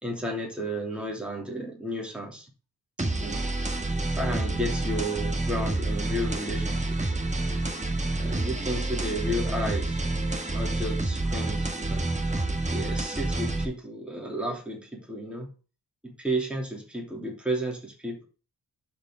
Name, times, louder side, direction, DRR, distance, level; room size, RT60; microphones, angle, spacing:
voice 1, 0.0-2.5 3.2-3.5 4.1-7.4 8.2-10.0 10.5-12.1 12.7-15.5 16.0-18.2, equal, 5° right, -1 dB, 2.9 m, -33 dB
sound 1, 3.0-13.6, right 2 dB, 20° right, 1.3 m, -28 dB
11.5 x 4.8 x 3.7 m, 0.34 s
wide cardioid pair, 120°, 39 cm